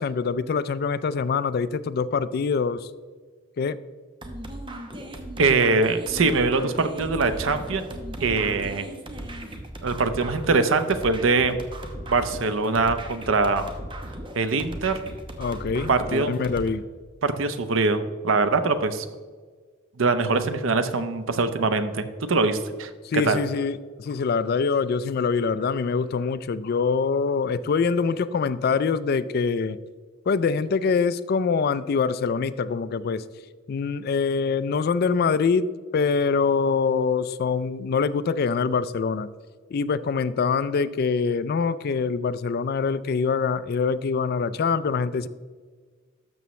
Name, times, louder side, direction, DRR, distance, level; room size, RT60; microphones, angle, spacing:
voice 1, 0.0-2.9 3.6-3.8 15.4-16.8 23.0-29.8 30.3-33.2 33.7-39.3 39.7-45.3, left 5 dB, 50° left, 15 dB, 0.4 m, -24 dB
sound 1, 4.2-16.7, right 1 dB, 25° right, 0.9 m, -37 dB
voice 2, 5.4-7.8 8.2-8.9 9.8-11.6 12.1-13.7 14.4-15.0 15.9-16.3 17.2-19.0 20.0-22.9 23.3-23.4, right 3 dB, 85° right, 10 dB, 0.7 m, -23 dB
12.5 x 7.0 x 3.1 m, 1.5 s
head